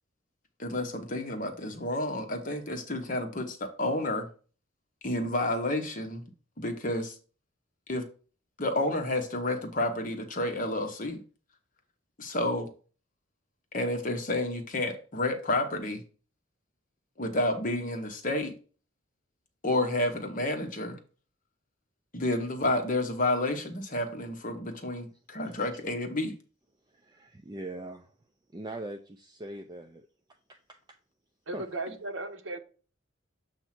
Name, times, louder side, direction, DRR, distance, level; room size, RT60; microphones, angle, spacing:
voice 1, 0.6-4.3 5.0-6.2 6.6-7.2 7.9-8.1 8.6-11.2 12.2-12.7 13.7-16.0 17.2-18.5 19.6-21.0 22.1-26.3, left 1 dB, 40° left, 1.0 m, -30 dB
voice 2, 26.9-28.1 28.5-30.1 30.7-30.8 31.5-31.6, right 1 dB, 20° right, 0.4 m, -41 dB
voice 3, 31.5-32.6, right 2 dB, 70° right, 0.9 m, -36 dB
7.3 x 2.7 x 5.8 m
head